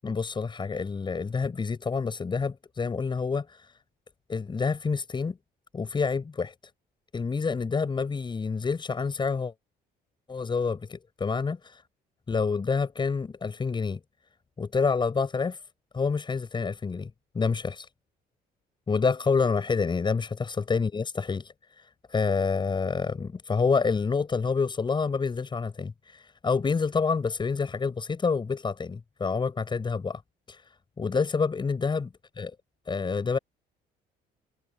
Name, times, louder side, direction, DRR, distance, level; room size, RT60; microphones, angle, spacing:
voice 1, 0.0-3.7 4.3-5.4 5.7-6.5 7.1-9.5 10.3-11.8 12.3-14.0 14.6-15.6 15.9-17.9 18.9-30.2 30.5-30.6 31.0-32.5 32.9-33.4, left 5 dB, 25° left, 7.6 m, -28 dB
cardioid pair, 110°, 17 cm